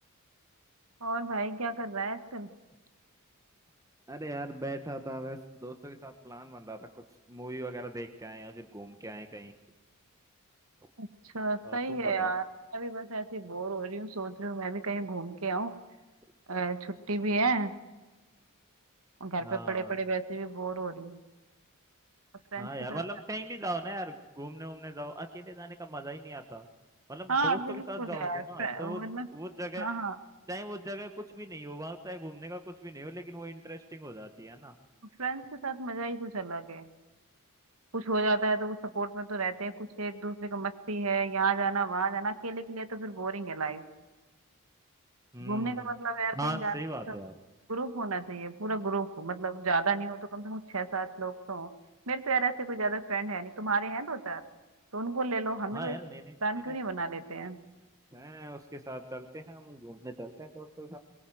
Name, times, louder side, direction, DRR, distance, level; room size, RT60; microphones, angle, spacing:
voice 1, 1.0-2.5 11.0-12.4 12.7-15.7 16.5-17.7 19.2-21.2 22.5-23.0 27.3-29.3 29.8-30.2 35.2-36.9 37.9-43.8 45.4-46.7 47.1-47.2 47.7-51.7 52.1-54.4 54.9-56.0 56.4-57.6, right 3 dB, 75° right, 10 dB, 1.8 m, -32 dB
voice 2, 4.1-9.5 11.6-12.3 19.4-20.0 22.6-26.7 27.1-29.0 29.3-29.9 30.5-34.7 45.3-45.9 46.3-47.3 55.7-56.4 56.7-56.8 58.1-61.0, right 1 dB, 15° right, 6 dB, 1.3 m, -40 dB
23.0 x 22.5 x 7.9 m, 1.2 s
head